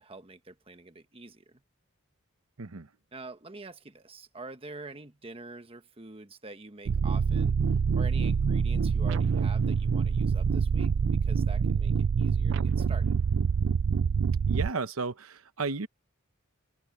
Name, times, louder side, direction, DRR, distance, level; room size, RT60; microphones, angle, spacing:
voice 1, 0.0-1.6 3.1-7.6 7.9-10.9 11.2-13.2, right 3 dB, 25° right, 1.3 m, -46 dB
sound 1, 6.9-14.7, right 6 dB, 60° right, 0.4 m, -26 dB
voice 2, 14.5-15.9, right 4 dB, 85° right, 1.0 m, -33 dB
open air
head